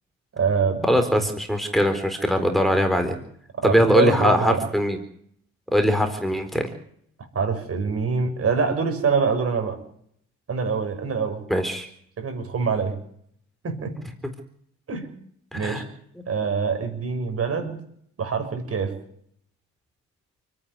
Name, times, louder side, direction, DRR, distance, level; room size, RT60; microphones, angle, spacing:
voice 1, 0.3-1.0 3.6-4.6 7.3-9.8 10.5-11.4 12.2-13.0 13.6-14.0 14.9-15.1 15.5-15.8 16.3-17.8 18.2-19.0, right 5 dB, 50° right, 7 dB, 6.5 m, -25 dB
voice 2, 0.8-3.2 3.6-5.0 5.7-6.6 11.5-11.9 15.5-15.8, equal, ahead, 5 dB, 4.1 m, -21 dB
29.0 x 9.8 x 9.7 m, 0.66 s
cardioid pair, 90°, 30 cm